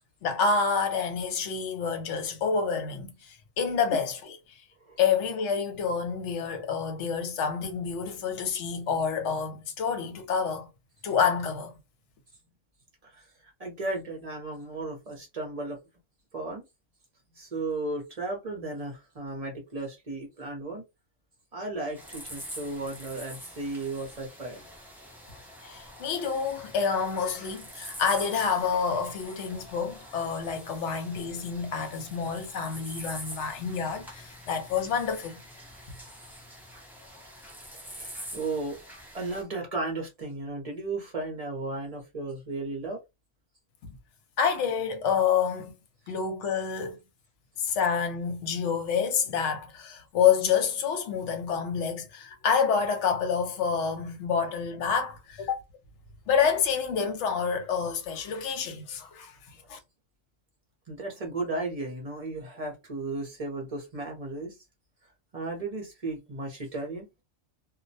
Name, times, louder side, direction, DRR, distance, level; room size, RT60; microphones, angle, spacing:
voice 1, 0.2-4.6 5.0-10.7 11.0-11.7 25.6-35.4 44.4-45.7 46.1-47.0 47.6-55.6 56.3-59.3 59.7-59.8, left 6 dB, 70° left, 0.9 m, -28 dB
voice 2, 13.1-15.8 16.3-16.6 17.4-20.8 21.5-24.6 37.8-38.8 39.1-43.0 60.9-64.6 65.3-67.1, right 2 dB, 35° right, 0.7 m, -35 dB
sound 1, 21.9-39.4, equal, 5° right, 0.3 m, -45 dB
2.3 x 2.1 x 2.6 m
omnidirectional pair, 1.3 m